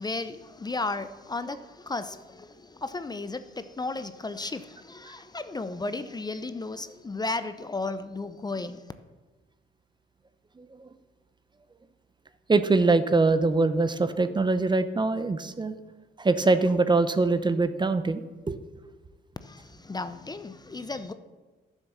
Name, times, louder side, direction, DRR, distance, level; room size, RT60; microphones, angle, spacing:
voice 1, 0.0-8.8 19.4-21.1, left 3 dB, 20° left, 0.6 m, -34 dB
voice 2, 10.6-10.9 12.5-15.8 16.2-18.6, right 3 dB, 25° right, 0.7 m, -23 dB
11.0 x 7.3 x 6.9 m
cardioid pair, 90°, 20 cm